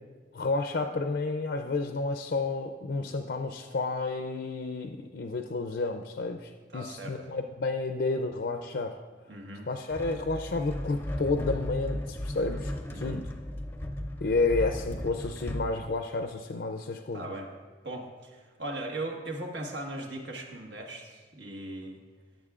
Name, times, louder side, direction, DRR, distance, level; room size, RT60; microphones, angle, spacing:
voice 1, 0.3-8.9 9.7-13.2 14.2-17.2, left 3 dB, 60° left, 5 dB, 0.5 m, -31 dB
voice 2, 6.7-7.2 9.3-9.7 12.9-13.2 17.1-17.5 17.8-22.0, right 2 dB, 75° right, 1 dB, 1.5 m, -38 dB
sound 1, 9.9-15.7, left 1 dB, 10° left, 0.5 m, -35 dB
17.5 x 7.9 x 2.4 m, 1.4 s
head